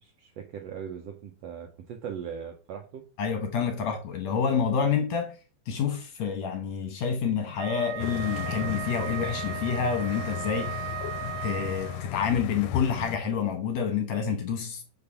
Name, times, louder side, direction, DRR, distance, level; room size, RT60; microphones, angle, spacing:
voice 1, 0.0-3.0, right 7 dB, 75° right, 1.5 m, -39 dB
voice 2, 3.2-5.4 5.7-10.9 11.4-14.8, left 6 dB, 65° left, 1.9 m, -28 dB
Wind instrument woodwind instrument, 7.5-12.1, right 15 dB, 90° right, 2.3 m, -37 dB
sound 1, 8.0-13.2, left 13 dB, 80° left, 2.1 m, -35 dB
6.8 x 5.3 x 5.5 m
omnidirectional pair, 3.9 m